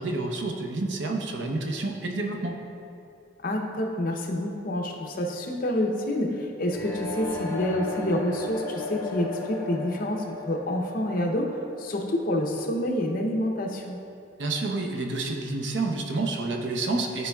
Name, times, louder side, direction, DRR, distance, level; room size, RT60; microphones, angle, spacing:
voice 1, 0.0-2.6 14.4-17.3, right 2 dB, 70° right, 2 dB, 0.7 m, -29 dB
voice 2, 3.4-14.0, left 1 dB, 50° left, 1 dB, 0.7 m, -28 dB
sound 1, 6.6-12.5, left 2 dB, 15° left, 0.6 m, -36 dB
11.5 x 4.3 x 2.3 m, 2.6 s
head